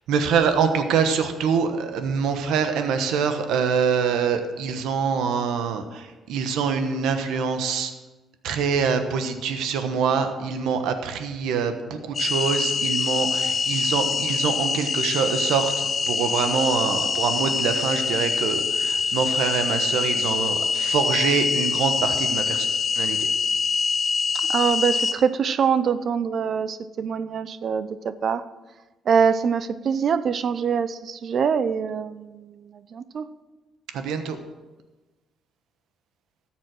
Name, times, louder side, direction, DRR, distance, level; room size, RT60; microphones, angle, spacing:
voice 1, 0.1-7.9 8.4-22.7 22.9-23.3 33.9-34.4, right 6 dB, 90° right, 7 dB, 1.1 m, -25 dB
sound 1, 12.1-25.1, left 5 dB, 40° left, 1.0 m, -24 dB
voice 2, 24.5-28.4 29.1-33.2, right 7 dB, 55° right, 14 dB, 0.6 m, -24 dB
13.5 x 7.4 x 6.1 m, 1.2 s
cardioid pair, 90°, 0 cm